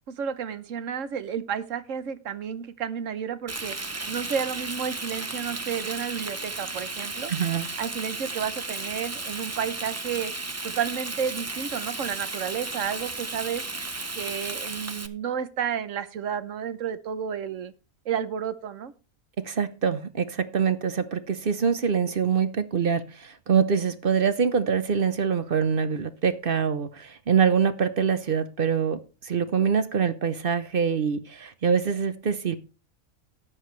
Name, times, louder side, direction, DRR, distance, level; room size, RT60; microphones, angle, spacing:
voice 1, 0.1-3.8 4.1-7.3 7.8-10.3 10.6-13.6 14.2-17.7 18.1-18.9, right 7 dB, 65° right, 1.1 m, -31 dB
Frying (food), 3.5-15.1, right 2 dB, 25° right, 0.3 m, -34 dB
voice 2, 7.3-7.7 19.4-32.6, right 6 dB, 45° right, 0.9 m, -24 dB
13.5 x 9.9 x 3.2 m
omnidirectional pair, 1.5 m